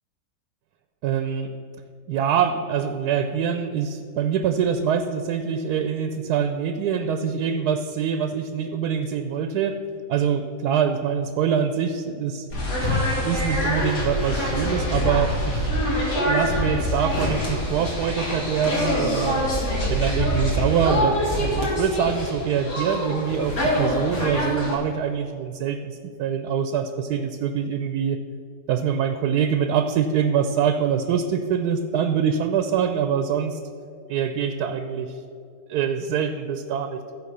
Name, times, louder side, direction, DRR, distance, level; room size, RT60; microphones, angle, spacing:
voice 1, 1.0-1.5 2.1-9.8 10.1-12.5 13.2-15.7 16.2-19.4 19.9-28.2 28.7-33.6 34.1-35.2 35.7-37.0, right 7 dB, 80° right, 8 dB, 1.1 m, -24 dB
sound 1, 12.5-24.7, equal, 80° left, 3.1 m, -25 dB
14.5 x 4.8 x 6.7 m, 2.5 s
omnidirectional pair, 1.7 m